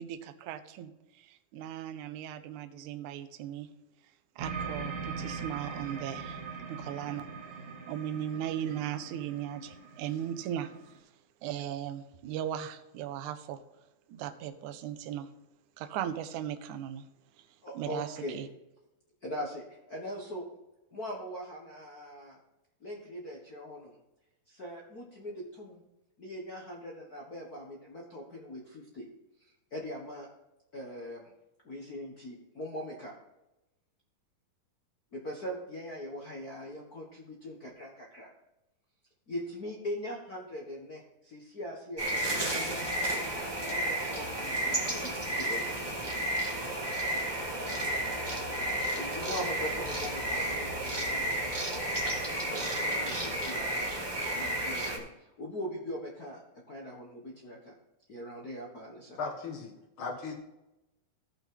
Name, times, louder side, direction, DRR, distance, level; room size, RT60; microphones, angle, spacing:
voice 1, 0.0-3.7 4.4-6.4 6.7-7.6 7.9-10.7 11.4-13.6 14.1-15.3 15.8-17.1 17.4-17.5 17.8-18.5, right 10 dB, 70° right, 9 dB, 2.0 m, -37 dB
sound 1, 4.4-11.0, right 5 dB, 55° right, 1.5 m, -41 dB
voice 2, 17.6-18.4 19.2-20.5 20.9-22.4 22.8-24.0 24.5-25.8 26.2-29.1 29.4-30.3 30.7-31.3 31.6-33.1 35.1-38.3 39.3-43.2 43.7-45.9 49.0-51.5 52.3-54.0 54.3-57.7 58.1-59.2, equal, 75° left, -1 dB, 0.8 m, -41 dB
sound 2, 42.0-55.0, right 1 dB, 15° right, 0.8 m, -32 dB
voice 3, 59.2-60.3, left 4 dB, 50° left, 3 dB, 1.8 m, -37 dB
16.0 x 5.9 x 3.8 m, 0.95 s
omnidirectional pair, 4.1 m